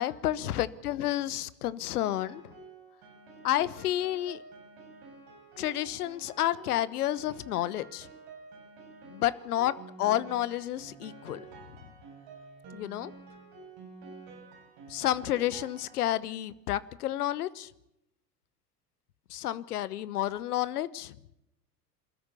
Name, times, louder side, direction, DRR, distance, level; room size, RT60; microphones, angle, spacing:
voice 1, 0.0-2.5 3.4-4.4 5.6-8.1 9.1-11.4 12.7-13.1 14.9-17.7 19.3-21.2, left 13 dB, 65° left, 18 dB, 1.1 m, -30 dB
Piano, 2.0-16.4, right 3 dB, 50° right, 7.6 m, -50 dB
28.0 x 13.5 x 8.5 m, 0.83 s
figure-of-eight pair, 80°, 48 cm